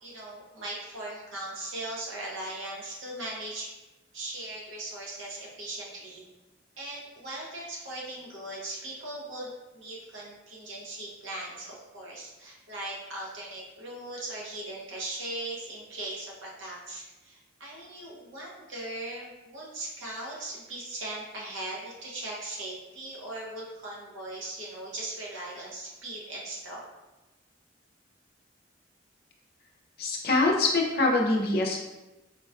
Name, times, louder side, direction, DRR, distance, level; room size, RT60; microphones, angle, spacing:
voice 1, 0.0-3.7 4.1-6.2 6.8-26.8, right 1 dB, 85° right, -4 dB, 0.8 m, -39 dB
voice 2, 30.0-31.8, left 2 dB, 50° left, 0 dB, 0.5 m, -24 dB
3.9 x 2.2 x 2.3 m, 1.1 s
head